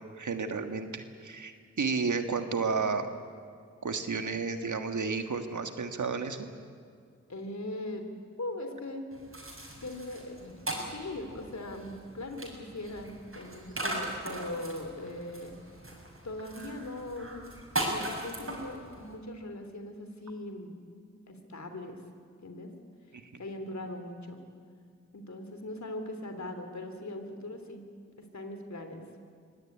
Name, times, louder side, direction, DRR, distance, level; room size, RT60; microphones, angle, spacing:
voice 1, 0.0-3.1 3.8-6.5 23.1-23.2, right 4 dB, 85° right, 7 dB, 1.6 m, -32 dB
voice 2, 7.3-9.1 9.7-15.5 16.2-17.4 17.8-20.8 21.3-22.0 22.4-22.7 23.4-24.4 25.1-27.9 28.3-29.0, left 1 dB, 70° left, 6 dB, 3.2 m, -40 dB
sound 1, 9.1-19.1, right 1 dB, 45° right, 6.8 m, -39 dB
24.0 x 17.5 x 9.7 m, 2.2 s
cardioid pair, 40°, 29 cm